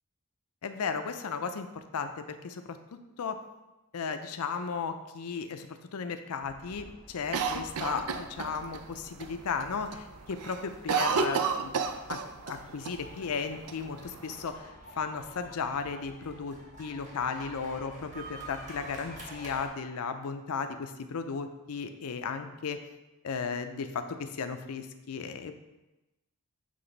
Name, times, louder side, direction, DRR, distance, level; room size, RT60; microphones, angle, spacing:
voice 1, 0.6-2.8 3.2-3.4 3.9-5.7 5.9-11.7 12.1-12.2 12.5-14.7 15.0-22.8 23.2-25.5, left 5 dB, 70° left, 8 dB, 0.5 m, -35 dB
sound 1, 6.4-19.7, right 1 dB, 35° right, 1.2 m, -49 dB
Cough, 7.3-8.8 9.2-9.3 9.6-10.0 10.3-12.6 12.8-12.9 13.7-14.5, right 5 dB, 85° right, 0.5 m, -30 dB
7.7 x 3.3 x 3.9 m, 1.0 s
head